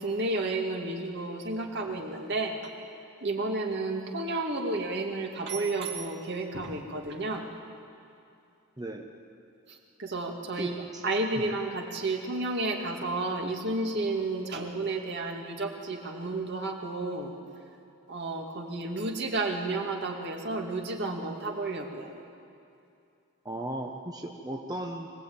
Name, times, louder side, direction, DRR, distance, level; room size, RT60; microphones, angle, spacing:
voice 1, 0.0-2.6 3.2-7.5 9.7-17.3 18.1-22.1, right 2 dB, 55° right, 1 dB, 2.3 m, -32 dB
voice 2, 8.8-9.1 10.6-11.0 11.4-11.6 23.4-25.1, right 1 dB, 20° right, 1 dB, 1.1 m, -36 dB
24.0 x 17.5 x 8.8 m, 2.6 s
head